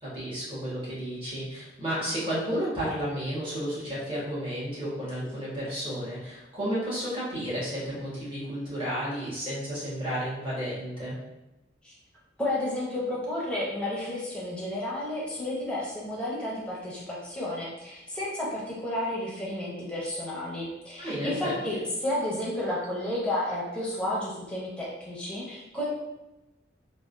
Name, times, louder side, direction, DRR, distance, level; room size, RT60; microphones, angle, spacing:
voice 1, 0.0-11.2 21.0-21.5, equal, 30° right, -8 dB, 1.2 m, -32 dB
voice 2, 12.4-25.9, left 1 dB, 5° left, -5 dB, 0.7 m, -32 dB
3.4 x 2.1 x 2.5 m, 0.97 s
head